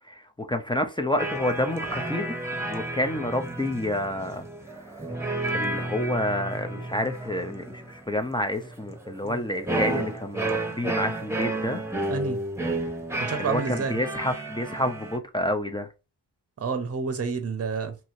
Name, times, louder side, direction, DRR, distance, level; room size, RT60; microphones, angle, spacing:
voice 1, 0.1-4.5 5.5-11.8 13.4-15.9, left 1 dB, 10° left, 0.5 m, -29 dB
sound 1, 1.2-15.2, right 2 dB, 5° right, 0.9 m, -32 dB
voice 2, 12.1-12.4 13.2-14.0 16.6-18.0, right 5 dB, 35° right, 0.7 m, -29 dB
2.8 x 2.7 x 2.5 m
cardioid pair, 50°, 45 cm